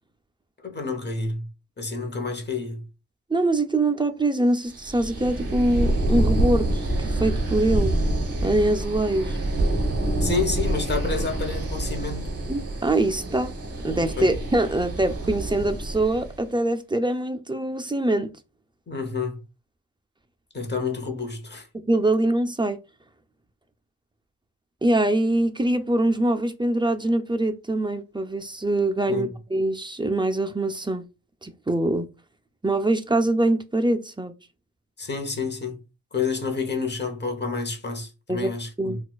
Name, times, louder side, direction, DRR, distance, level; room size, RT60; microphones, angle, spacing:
voice 1, 0.6-1.5 1.8-2.9 10.2-12.3 14.2-14.3 18.9-19.4 20.5-21.7 29.1-29.3 35.0-35.8 36.1-39.0, left 4 dB, 25° left, 1.0 m, -29 dB
voice 2, 3.3-8.0 8.4-9.4 12.5-13.5 13.8-18.3 21.9-22.8 24.8-31.0 31.4-32.1 32.6-34.3 38.3-38.5 38.8-39.0, right 1 dB, 15° right, 0.3 m, -23 dB
sound 1, 4.6-16.4, right 1 dB, 35° right, 1.0 m, -26 dB
4.0 x 2.3 x 2.3 m
cardioid pair, 75°, 39 cm